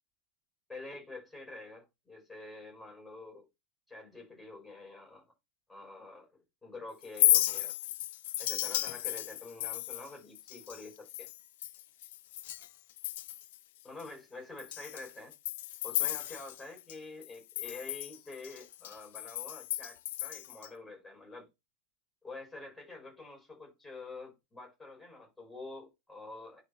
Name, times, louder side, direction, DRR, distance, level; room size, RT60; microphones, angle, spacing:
voice 1, 0.7-3.4 3.9-5.3 5.7-6.3 6.6-7.7 8.4-11.3 13.8-15.3 15.8-21.5 22.2-26.6, left 3 dB, 5° left, 5.1 m, -47 dB
Chink clink, 7.0-12.7 13.0-13.6 14.0-14.1 14.6-16.9 17.2-20.7, left 15 dB, 55° left, 0.4 m, -33 dB
11.0 x 5.1 x 2.6 m
figure-of-eight pair, 90°, 0 cm